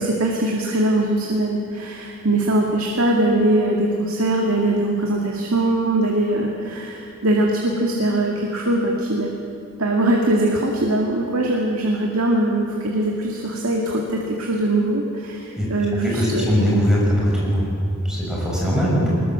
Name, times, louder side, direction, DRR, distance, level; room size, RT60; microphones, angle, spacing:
voice 1, 0.0-9.3 9.8-16.5, right 1 dB, 75° right, 0 dB, 2.2 m, -21 dB
voice 2, 16.0-17.7 18.0-19.1, equal, 5° right, -5 dB, 6.5 m, -20 dB
22.0 x 20.5 x 7.5 m, 2.7 s
head